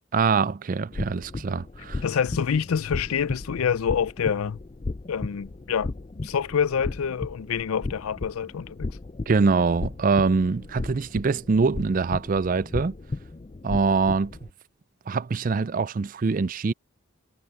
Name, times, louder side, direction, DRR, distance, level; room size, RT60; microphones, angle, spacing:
voice 1, 0.1-2.0 9.3-12.9 13.6-14.3 15.1-16.7, right 4 dB, 40° right, 0.4 m, -24 dB
sound 1, 0.9-14.5, left 2 dB, 30° left, 0.4 m, -36 dB
voice 2, 2.0-4.6 5.1-5.9 6.2-8.9, left 7 dB, 85° left, 0.4 m, -26 dB
head